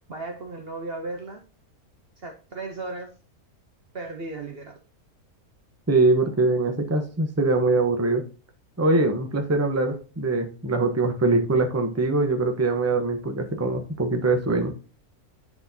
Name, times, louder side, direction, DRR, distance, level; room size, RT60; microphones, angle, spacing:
voice 1, 0.1-1.4 2.2-3.1 3.9-4.8, right 3 dB, 45° right, 0.9 m, -35 dB
voice 2, 5.9-8.2 8.8-14.7, right 3 dB, 10° right, 0.8 m, -23 dB
10.5 x 4.3 x 2.7 m
omnidirectional pair, 1.6 m